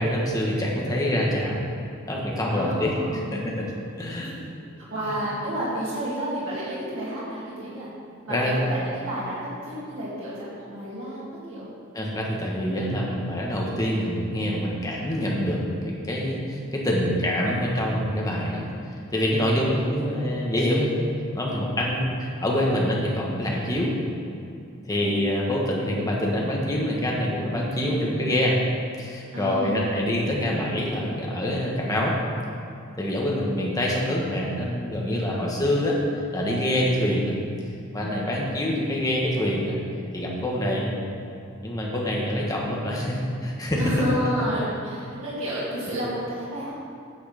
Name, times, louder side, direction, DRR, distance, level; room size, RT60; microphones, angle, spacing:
voice 1, 0.0-1.6 2.1-3.0 3.3-3.7 4.0-4.3 5.0-5.1 8.3-8.6 11.9-18.7 19.1-20.9 21.3-23.9 24.9-28.6 29.0-32.1 33.0-37.3 37.9-39.8 40.1-40.9 41.6-43.9, left 1 dB, 20° left, -3 dB, 1.3 m, -25 dB
voice 2, 2.5-3.5 4.1-4.5 4.9-7.9 8.2-11.7 19.5-20.2 25.0-25.2 29.3-29.9 38.2-38.4 43.8-46.7, equal, 85° right, -9 dB, 2.2 m, -31 dB
9.1 x 6.3 x 5.0 m, 2.6 s
head